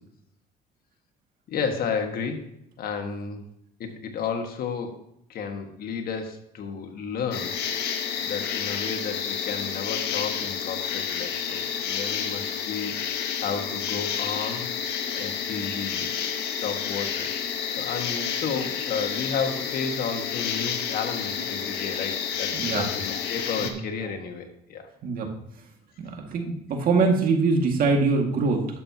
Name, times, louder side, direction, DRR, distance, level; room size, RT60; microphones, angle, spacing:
voice 1, 1.5-2.5 2.8-3.4 3.8-5.0 5.3-7.5 8.2-13.0 13.4-14.7 15.2-16.1 16.5-17.3 17.8-24.9, left 6 dB, 60° left, 4 dB, 1.6 m, -32 dB
sound 1, 7.3-23.7, left 7 dB, 85° left, 1.2 m, -30 dB
voice 2, 22.5-22.9 23.6-23.8 25.0-25.3 26.0-28.7, right 4 dB, 60° right, 3 dB, 2.0 m, -23 dB
11.5 x 7.5 x 2.9 m, 0.76 s
cardioid pair, 110°, 17 cm